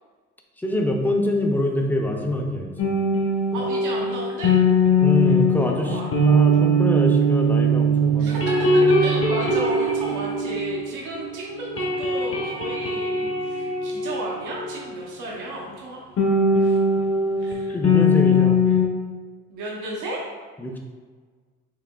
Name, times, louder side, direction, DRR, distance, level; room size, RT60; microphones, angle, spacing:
voice 1, 0.6-3.0 5.0-8.4 17.5-18.6 20.6-20.8, left 1 dB, 5° left, 1 dB, 0.5 m, -25 dB
sound 1, 2.8-11.3 11.5-15.0 16.2-18.9, equal, 45° left, 0.8 m, -21 dB
voice 2, 3.5-4.6 5.8-6.8 8.2-8.7 9.0-16.0 16.4-16.8 17.4-17.7 19.5-20.2, right 1 dB, 85° right, -4 dB, 0.9 m, -33 dB
4.8 x 2.8 x 2.3 m, 1.5 s
cardioid pair, 90°, 30 cm